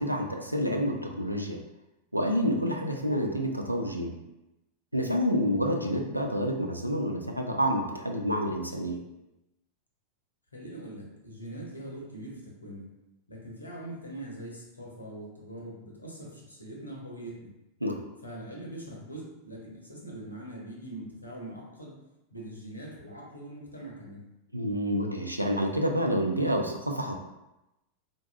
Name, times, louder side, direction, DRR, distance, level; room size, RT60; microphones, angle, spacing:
voice 1, 0.0-1.6 2.1-4.1 4.9-9.0 17.8-18.0 24.5-27.1, equal, 90° right, 2 dB, 0.3 m, -28 dB
voice 2, 10.5-12.9 13.3-17.5 18.2-21.9 22.3-24.2, right 1 dB, 80° left, -2 dB, 0.7 m, -42 dB
3.9 x 2.3 x 2.3 m, 0.94 s
figure-of-eight pair, 90°, 0 cm